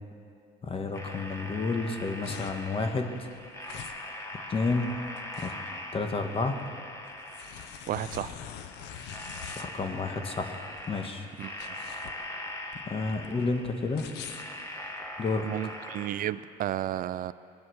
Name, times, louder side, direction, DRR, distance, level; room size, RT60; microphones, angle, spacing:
voice 1, 0.6-3.1 4.5-4.9 5.4-5.5 5.9-6.6 9.5-11.3 12.9-14.0 15.2-15.5, left 3 dB, 35° left, 5 dB, 1.4 m, -30 dB
sound 1, 0.9-16.1, left 1 dB, 15° left, 1.6 m, -42 dB
sound 2, 2.0-15.3, left 9 dB, 90° left, 0.8 m, -45 dB
voice 2, 7.9-8.4 11.4-11.6 15.4-17.3, right 12 dB, 55° right, 16 dB, 0.5 m, -32 dB
21.0 x 8.4 x 6.4 m, 2.7 s
cardioid pair, 110°, 17 cm